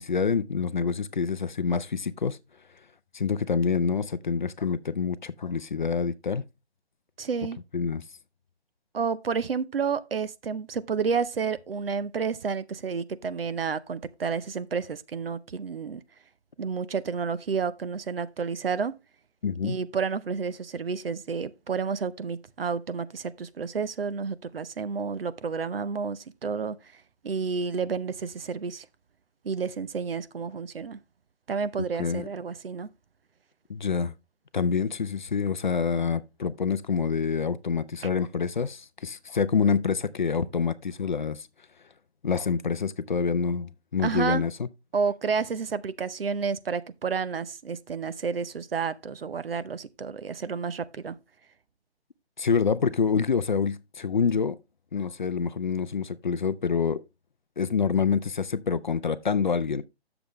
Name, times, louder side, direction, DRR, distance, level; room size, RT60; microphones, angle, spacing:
voice 1, 0.0-2.4 3.1-6.4 7.7-8.0 19.4-19.8 31.8-32.3 33.7-34.1 34.5-41.5 42.2-44.7 52.4-54.6 54.9-57.0 57.6-59.8, left 6 dB, 45° left, 0.5 m, -27 dB
voice 2, 7.2-7.6 8.9-16.0 16.6-18.9 19.6-26.8 27.2-28.9 29.4-31.0 31.5-32.9 44.0-44.4 44.9-51.2, right 5 dB, 60° right, 0.6 m, -30 dB
8.5 x 6.9 x 3.1 m
figure-of-eight pair, 155°, 33 cm